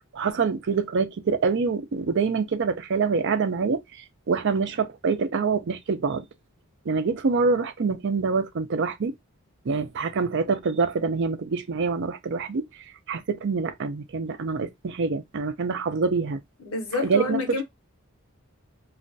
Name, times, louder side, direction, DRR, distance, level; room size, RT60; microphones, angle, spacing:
voice 1, 0.1-3.8 4.3-6.2 6.9-9.1 9.7-12.6 13.1-16.4 17.0-17.4, right 4 dB, 60° right, 0.5 m, -25 dB
voice 2, 16.6-17.6, left 3 dB, 90° left, 0.9 m, -28 dB
2.4 x 2.2 x 3.8 m
head